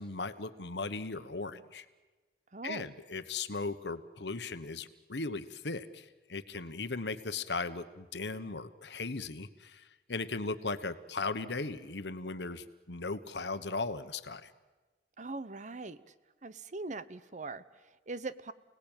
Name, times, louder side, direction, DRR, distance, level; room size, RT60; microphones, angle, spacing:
voice 1, 0.0-1.9 2.6-14.5, left 3 dB, 75° left, 11 dB, 1.3 m, -37 dB
voice 2, 2.5-2.9 15.2-16.0 16.4-18.5, right 3 dB, 45° right, 15 dB, 0.9 m, -41 dB
29.0 x 19.0 x 9.1 m, 1.2 s
head